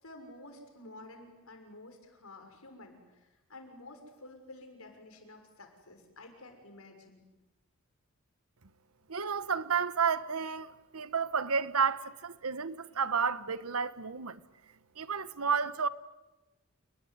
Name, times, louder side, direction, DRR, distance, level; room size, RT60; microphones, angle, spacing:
voice 1, 0.0-7.2, left 2 dB, 80° left, 6.4 m, -51 dB
voice 2, 9.1-14.4 15.0-15.9, right 6 dB, 90° right, 1.2 m, -31 dB
29.0 x 20.5 x 9.7 m
head